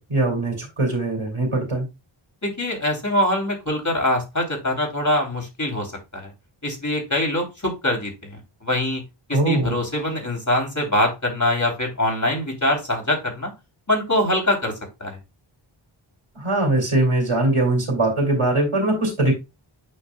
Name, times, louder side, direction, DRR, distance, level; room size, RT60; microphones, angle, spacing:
voice 1, 0.0-1.9 9.3-9.7 16.4-19.3, right 2 dB, 90° right, 2.5 m, -21 dB
voice 2, 2.4-6.3 6.6-8.4 8.6-9.0 9.3-13.5 13.9-14.7 15.0-15.2, left 1 dB, 35° left, 3.3 m, -23 dB
8.6 x 5.6 x 2.3 m
wide cardioid pair, 45°, 49 cm